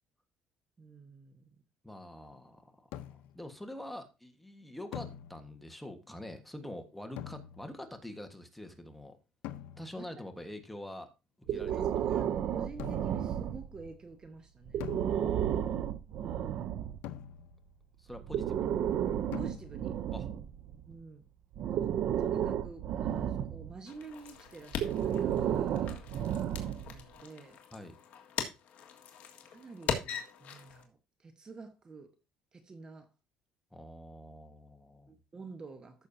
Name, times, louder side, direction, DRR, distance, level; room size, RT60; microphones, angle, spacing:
voice 1, 0.8-1.5 9.9-10.1 11.5-14.9 16.2-16.8 19.4-19.9 20.9-21.2 22.2-26.0 26.8-27.6 29.4-32.2 32.5-33.1 35.1-36.1, right 4 dB, 25° right, 1.1 m, -49 dB
voice 2, 1.8-9.2 9.8-11.1 11.5-12.2 15.1-15.9 18.0-18.7 20.1-20.3 27.7-28.0 33.7-35.1, left 1 dB, 5° left, 1.4 m, -46 dB
sound 1, 2.9-3.5 4.9-5.8 7.2-7.9 9.4-10.2 12.8-13.3 14.8-15.7 17.0-17.8 19.3-20.0, left 12 dB, 80° left, 0.7 m, -45 dB
Breathing, 11.5-13.9 14.7-17.0 18.1-21.0 21.6-23.8 24.7-27.0, right 10 dB, 55° right, 0.6 m, -32 dB
sound 2, 23.9-30.8, left 7 dB, 55° left, 1.7 m, -41 dB
14.0 x 6.4 x 2.7 m
cardioid pair, 120°, 3 cm